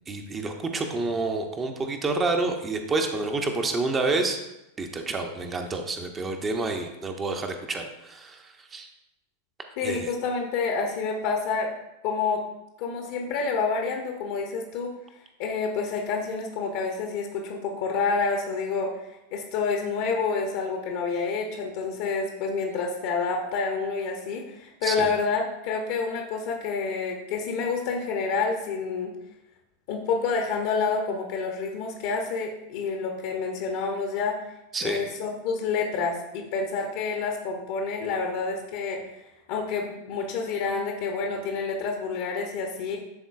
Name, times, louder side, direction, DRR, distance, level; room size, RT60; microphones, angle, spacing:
voice 1, 0.1-4.4 4.8-8.9 9.8-10.1 24.8-25.1 34.7-35.0, right 3 dB, 20° right, 4 dB, 0.7 m, -29 dB
voice 2, 9.8-11.7 12.0-12.4 12.8-14.9 15.4-18.9 19.3-29.1 29.9-34.5 34.8-39.2 39.5-43.0, left 4 dB, 50° left, 2 dB, 0.8 m, -28 dB
10.5 x 3.8 x 2.4 m, 0.91 s
figure-of-eight pair, 90°, 0 cm